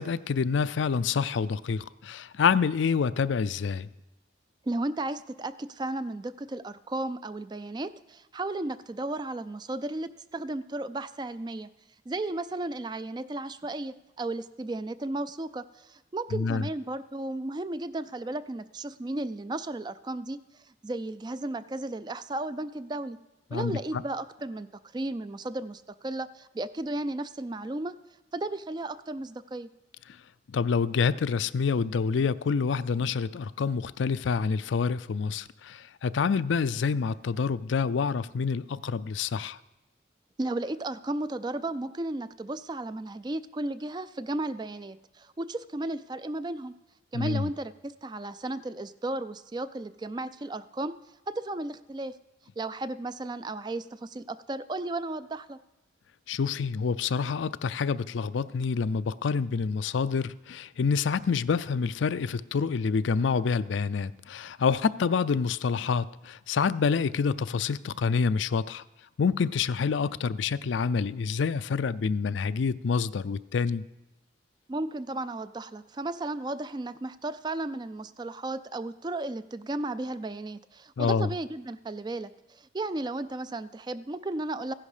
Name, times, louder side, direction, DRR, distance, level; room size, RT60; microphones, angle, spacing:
voice 1, 0.0-3.9 16.3-16.6 23.5-24.0 30.5-39.6 47.1-47.5 56.3-68.8 69.2-73.8 81.0-81.3, left 5 dB, 80° left, 16 dB, 0.4 m, -27 dB
voice 2, 4.6-11.7 12.1-20.4 20.8-23.2 23.5-24.7 24.9-27.9 28.3-29.7 40.4-46.7 47.1-51.0 51.3-52.1 52.6-55.6 74.7-84.7, right 2 dB, 20° right, 14 dB, 0.3 m, -34 dB
15.5 x 10.5 x 5.0 m, 1.0 s
head